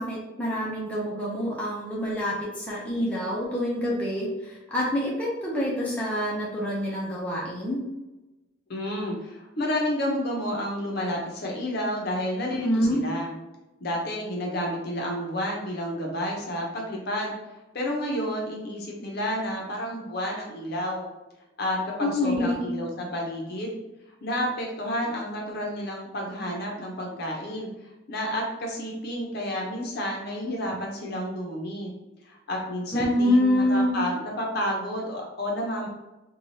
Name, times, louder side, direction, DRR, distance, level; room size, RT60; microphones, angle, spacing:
voice 1, 0.0-7.8 12.5-13.0 22.0-22.7 32.9-34.0, left 1 dB, 5° left, -6 dB, 0.5 m, -26 dB
voice 2, 8.7-13.3 13.8-17.3 17.7-21.1 21.6-23.8 24.2-31.9 32.3-35.9, equal, 50° left, 0 dB, 0.6 m, -30 dB
3.1 x 2.3 x 2.7 m, 1.0 s
head